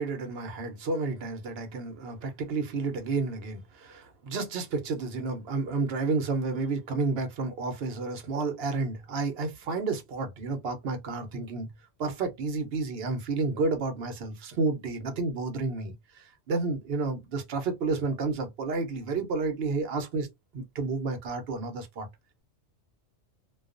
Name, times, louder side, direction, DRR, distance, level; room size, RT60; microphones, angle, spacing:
voice 1, 0.0-11.7 12.0-20.3 20.5-22.1, right 3 dB, 55° right, 0.9 m, -31 dB
2.3 x 2.3 x 2.4 m
omnidirectional pair, 1.3 m